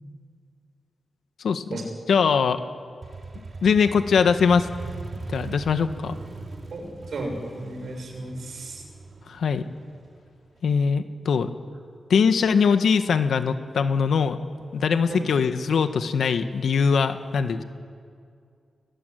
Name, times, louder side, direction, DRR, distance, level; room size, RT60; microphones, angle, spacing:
voice 1, 1.4-1.8 2.1-2.6 3.6-4.7 5.3-6.1 9.3-9.6 10.6-11.5 12.1-14.4 14.7-17.6, left 6 dB, 80° left, 9 dB, 1.6 m, -21 dB
Motorcycle, 3.0-10.7, right 3 dB, 45° right, 3.2 m, -40 dB
voice 2, 6.7-8.8 15.1-15.2, right 2 dB, 70° right, 3 dB, 6.8 m, -34 dB
29.5 x 20.0 x 9.4 m, 2.3 s
cardioid pair, 85°, 0 cm